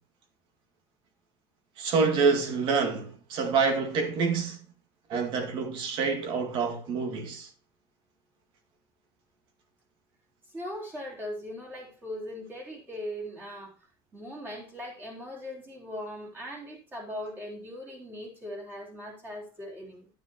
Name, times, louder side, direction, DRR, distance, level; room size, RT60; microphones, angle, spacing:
voice 1, 1.8-4.6 5.1-7.5, right 5 dB, 45° right, 2.1 m, -27 dB
voice 2, 10.5-13.7 14.1-20.1, equal, 15° right, 3.5 m, -39 dB
10.5 x 9.5 x 3.0 m
cardioid pair, 155°, 11 cm